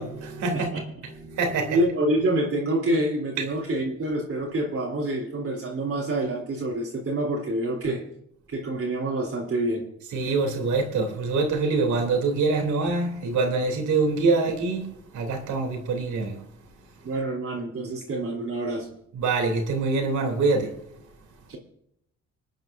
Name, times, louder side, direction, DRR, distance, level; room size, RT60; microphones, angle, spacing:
voice 1, 0.0-1.8 10.1-14.9 15.1-16.4 19.1-20.7, right 3 dB, 75° right, 3 dB, 3.2 m, -25 dB
voice 2, 1.7-8.0 8.5-9.8 17.0-18.9 21.5-21.6, right 1 dB, 50° right, -3 dB, 3.4 m, -27 dB
26.5 x 9.0 x 2.6 m, 0.76 s
cardioid pair, 90°, 30 cm